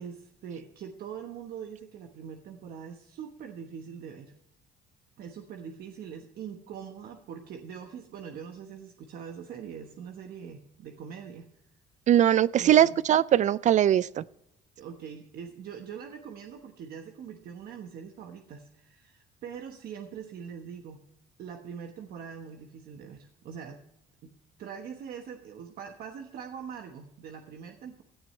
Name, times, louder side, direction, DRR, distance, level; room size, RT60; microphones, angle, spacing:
voice 1, 0.0-4.3 5.2-11.5 12.5-13.0 14.8-21.0 21.4-23.8 24.2-24.3 24.6-28.0, right 7 dB, 65° right, 4 dB, 1.2 m, -42 dB
voice 2, 12.1-14.2, right 11 dB, 45° right, 19 dB, 0.4 m, -21 dB
17.0 x 11.0 x 3.2 m, 0.81 s
cardioid pair, 110°, 17 cm